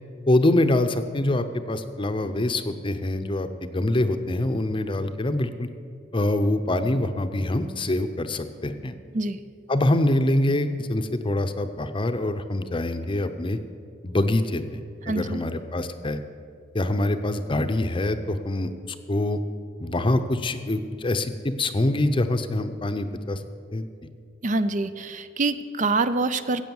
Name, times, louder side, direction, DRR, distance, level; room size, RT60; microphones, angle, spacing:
voice 1, 0.3-5.7 6.1-8.9 9.7-13.6 14.0-14.8 15.1-16.2 16.7-18.7 19.1-19.4 19.8-23.4 23.7-23.9, left 1 dB, 30° left, 9 dB, 0.7 m, -25 dB
voice 2, 15.1-15.4 24.4-26.6, right 3 dB, 45° right, 12 dB, 0.5 m, -25 dB
15.5 x 8.6 x 7.2 m, 2.3 s
head